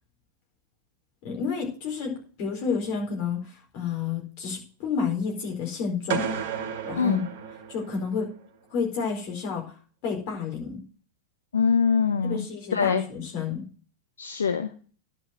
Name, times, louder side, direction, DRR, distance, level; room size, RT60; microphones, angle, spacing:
voice 1, 1.2-6.2 6.8-7.3 7.7-8.3 8.7-9.6 10.0-10.8 12.2-13.6, left 5 dB, 45° left, 1 dB, 4.3 m, -30 dB
sound 1, 6.1-8.2, right 7 dB, 50° right, 1.4 m, -32 dB
voice 2, 11.5-12.4 12.7-13.0 14.2-14.7, left 6 dB, 70° left, 8 dB, 0.8 m, -23 dB
10.5 x 5.3 x 7.7 m, 0.40 s
figure-of-eight pair, 90°, 0 cm